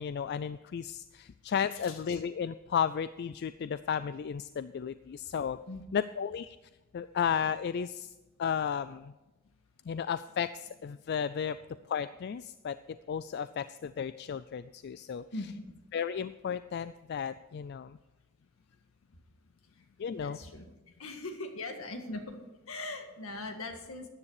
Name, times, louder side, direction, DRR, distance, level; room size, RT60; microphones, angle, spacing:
voice 1, 0.0-5.6 5.9-6.6 6.9-8.1 8.4-9.1 9.9-11.6 11.9-12.8 13.1-15.2 15.9-18.0 20.0-20.4, left 7 dB, 50° left, 14 dB, 0.3 m, -33 dB
voice 2, 1.7-2.2 5.7-6.0 15.3-15.7 19.7-19.8 20.1-24.1, left 2 dB, 75° left, 5 dB, 1.8 m, -41 dB
13.5 x 9.9 x 4.8 m, 1.1 s
head